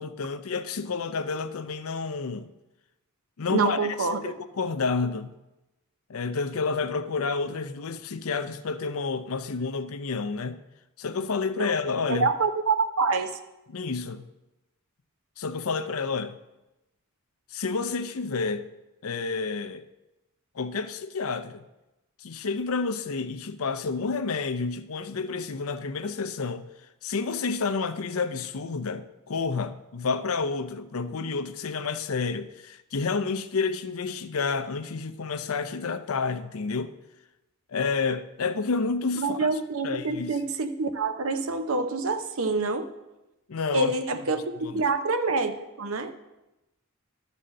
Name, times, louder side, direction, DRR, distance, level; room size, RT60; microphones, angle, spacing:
voice 1, 0.0-2.5 3.4-5.3 6.1-10.6 11.0-12.3 13.7-14.2 15.4-16.3 17.5-18.6 19.0-19.8 20.6-21.6 22.2-26.6 27.0-36.9 37.7-39.5 39.8-40.3 43.5-43.9 44.6-44.8, left 4 dB, 70° left, 0.6 m, -30 dB
voice 2, 3.5-4.3 11.6-11.7 12.1-13.4 39.2-42.9 43.7-46.1, right 3 dB, 65° right, 0.7 m, -26 dB
12.5 x 4.2 x 6.4 m
head